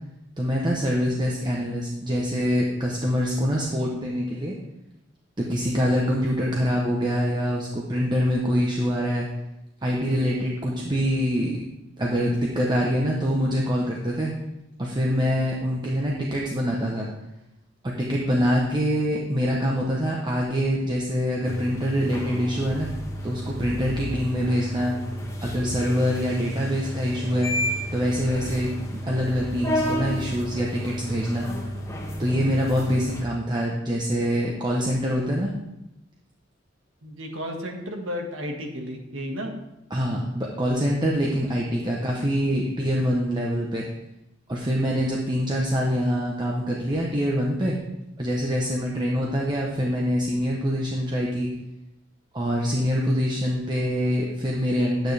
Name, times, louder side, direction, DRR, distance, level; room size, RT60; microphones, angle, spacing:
voice 1, 0.4-4.5 5.4-9.3 9.8-11.6 12.0-14.3 14.8-17.1 17.8-22.9 23.2-24.9 25.4-27.5 27.9-28.7 28.9-31.5 32.2-35.5 39.9-43.9 44.5-47.8 48.2-51.5 52.3-55.1, equal, 20° right, -2 dB, 1.0 m, -25 dB
sound 1, 21.4-33.2, equal, 15° left, 1.3 m, -32 dB
voice 2, 37.0-39.5, equal, 85° right, 2 dB, 1.7 m, -33 dB
10.5 x 9.0 x 3.4 m, 0.91 s
head